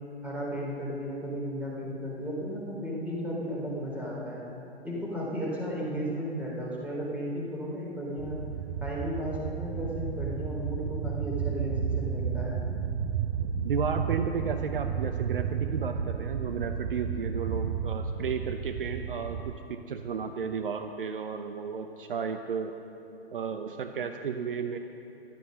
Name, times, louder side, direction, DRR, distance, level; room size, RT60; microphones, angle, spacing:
voice 1, 0.2-4.4 4.8-8.4 8.8-12.6, equal, 5° right, -4 dB, 3.5 m, -34 dB
sound 1, 8.2-19.6, right 7 dB, 35° right, 0.6 m, -32 dB
voice 2, 13.6-22.7 23.3-24.8, right 6 dB, 55° right, 6 dB, 0.9 m, -33 dB
14.0 x 12.0 x 6.5 m, 2.9 s
figure-of-eight pair, 120°, 31 cm